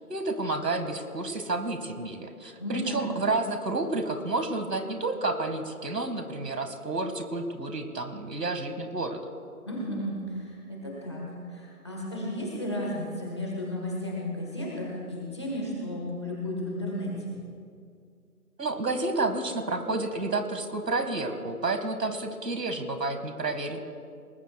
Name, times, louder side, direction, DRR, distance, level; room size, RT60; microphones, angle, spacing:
voice 1, 0.1-9.2 18.6-23.8, right 2 dB, 85° right, 7 dB, 1.9 m, -30 dB
voice 2, 2.6-3.0 9.7-17.3, left 1 dB, 15° left, -4 dB, 1.5 m, -34 dB
23.0 x 19.5 x 2.3 m, 2.3 s
figure-of-eight pair, 170°, 48 cm